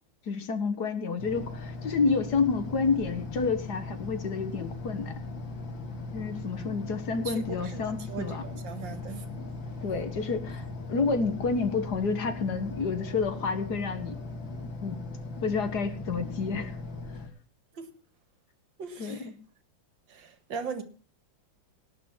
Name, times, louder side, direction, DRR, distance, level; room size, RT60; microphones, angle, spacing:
voice 1, 0.3-5.1 6.1-8.4 9.8-14.2 14.8-15.0 15.4-16.7 19.0-19.3, left 4 dB, 55° left, 9 dB, 1.9 m, -29 dB
sound 1, 1.2-17.3, left 2 dB, 75° left, 2.8 m, -38 dB
voice 2, 7.3-9.3 17.7-17.9 18.8-19.3 20.1-20.8, right 6 dB, 70° right, 10 dB, 2.3 m, -39 dB
18.0 x 6.1 x 7.2 m, 0.39 s
omnidirectional pair, 2.1 m